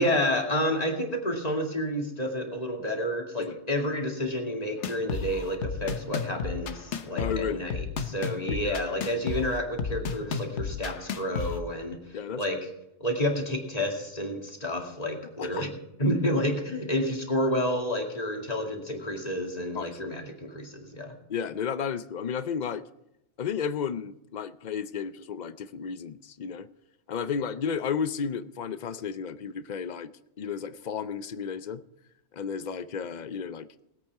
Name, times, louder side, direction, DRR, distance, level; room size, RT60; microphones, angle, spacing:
voice 1, 0.0-12.6 13.0-15.7 16.0-21.1, equal, 35° left, 2.3 m, -30 dB
sound 1, 4.8-11.6, left 6 dB, 80° left, 1.2 m, -33 dB
voice 2, 7.2-7.7 8.5-8.8 12.1-12.4 15.4-15.6 19.7-20.0 21.3-22.8 23.4-26.7 27.1-30.1 30.4-31.8 32.3-33.7, left 7 dB, 50° left, 0.6 m, -33 dB
20.0 x 8.5 x 4.7 m
omnidirectional pair, 1.2 m